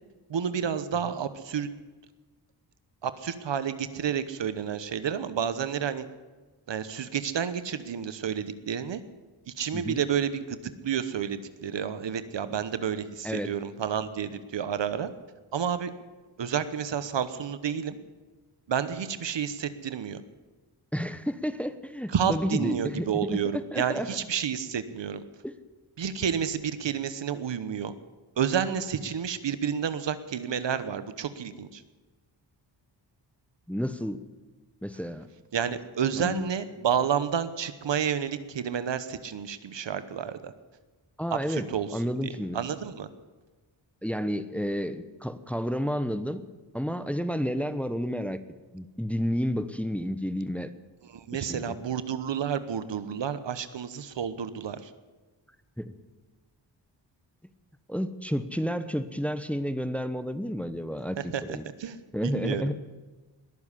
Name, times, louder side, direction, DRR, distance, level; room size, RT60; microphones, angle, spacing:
voice 1, 0.3-1.7 3.0-6.1 6.7-9.0 9.5-15.1 15.5-15.9 16.4-18.0 18.7-20.2 22.1-25.2 26.0-27.9 28.4-31.8 35.5-40.5 41.3-42.2 42.5-43.1 51.0-54.9 61.3-61.4 61.8-62.0 62.2-62.7, right 8 dB, 70° right, 13 dB, 1.1 m, -30 dB
voice 2, 20.9-23.4 23.7-24.1 25.4-25.5 33.7-34.2 34.8-35.3 36.2-36.4 41.2-41.7 41.9-42.6 44.0-46.4 46.7-48.4 48.7-50.7 51.3-51.7 55.8-55.9 57.9-61.2 61.5-61.6 62.1-62.8, equal, 5° left, 11 dB, 1.0 m, -30 dB
20.5 x 7.2 x 9.8 m, 1.3 s
cardioid pair, 65°, 45 cm